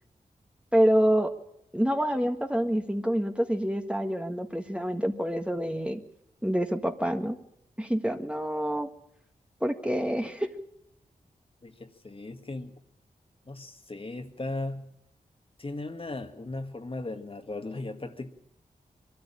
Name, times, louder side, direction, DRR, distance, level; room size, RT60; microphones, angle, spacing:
voice 1, 0.7-1.3 1.7-6.0 6.4-7.4 7.8-8.9 9.6-10.5, equal, 5° right, 1.6 m, -27 dB
voice 2, 11.6-12.8 13.5-14.9 15.6-18.3, left 2 dB, 40° left, 1.8 m, -37 dB
22.0 x 13.0 x 8.9 m
cardioid pair, 50°, 15 cm